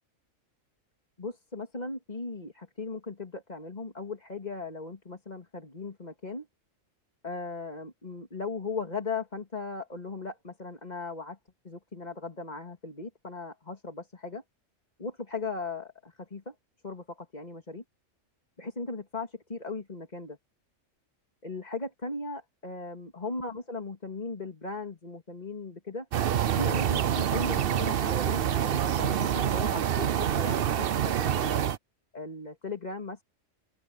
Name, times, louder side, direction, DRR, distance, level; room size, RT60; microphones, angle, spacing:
voice 1, 1.2-6.5 7.2-11.4 11.6-14.4 15.0-16.5 16.8-17.8 18.6-20.4 21.4-26.1 26.6-31.6 32.1-33.2, left 3 dB, 30° left, 2.5 m, -37 dB
sound 1, 26.1-31.8, right 9 dB, 55° right, 0.8 m, -27 dB
open air
omnidirectional pair, 1.4 m